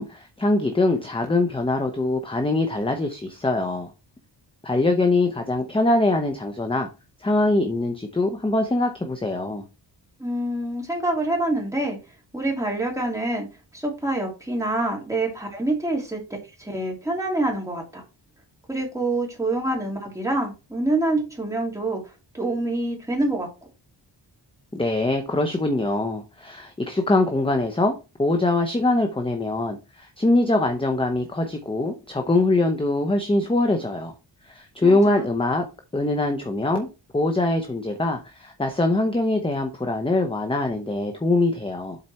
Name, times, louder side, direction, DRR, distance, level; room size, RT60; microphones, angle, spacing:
voice 1, 0.0-3.9 4.6-6.9 7.2-9.6 24.7-34.1 34.5-35.6 35.9-36.9 37.1-42.0, left 2 dB, 10° left, 0.8 m, -23 dB
voice 2, 10.2-12.0 12.3-13.5 13.7-16.2 16.6-18.0 18.7-22.0 22.3-23.5 34.8-35.3, right 2 dB, 5° right, 2.9 m, -26 dB
7.7 x 4.3 x 4.3 m
wide cardioid pair, 145°, 43 cm